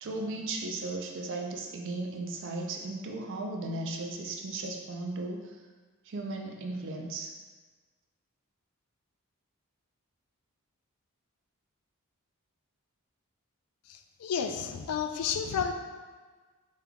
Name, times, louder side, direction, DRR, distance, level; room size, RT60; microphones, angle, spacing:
voice 1, 0.0-5.6 6.0-7.3, right 2 dB, 60° right, 1 dB, 0.5 m, -36 dB
voice 2, 13.9-15.7, left 7 dB, 80° left, 6 dB, 0.4 m, -31 dB
5.1 x 3.2 x 2.3 m, 1.4 s
head